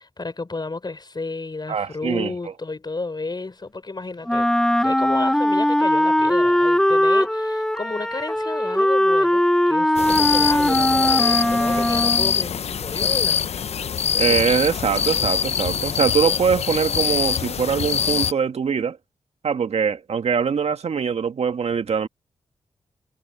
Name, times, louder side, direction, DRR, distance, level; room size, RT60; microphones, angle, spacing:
voice 1, 0.0-4.5 4.8-13.4, left 3 dB, 40° left, 5.2 m, -32 dB
voice 2, 1.7-2.3 11.7-11.8 14.2-19.0 19.4-22.1, right 6 dB, 70° right, 1.8 m, -22 dB
Wind instrument woodwind instrument, 4.3-12.4, left 1 dB, 5° left, 0.5 m, -20 dB
sound 1, 9.9-18.3, left 8 dB, 70° left, 0.7 m, -23 dB
cardioid pair, 45°, 11 cm